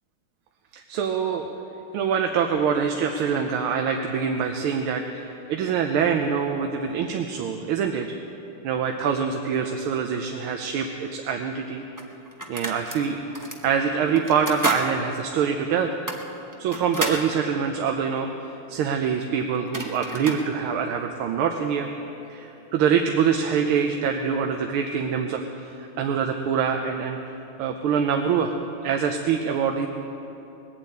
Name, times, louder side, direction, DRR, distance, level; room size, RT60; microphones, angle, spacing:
voice 1, 0.7-1.5 1.9-8.1 8.6-11.8 12.5-13.2 13.6-16.0 16.6-21.9 22.3-27.2 27.6-28.6 28.8-29.9, right 7 dB, 85° right, 4 dB, 1.6 m, -25 dB
sound 1, 11.2-11.3 12.0-13.0 13.3-13.6 14.1-14.9 15.2-15.3 15.9-17.2 19.2-19.3 19.5-20.4, right 1 dB, 15° right, 0.6 m, -30 dB
20.5 x 8.1 x 8.5 m, 3.0 s
omnidirectional pair, 2.3 m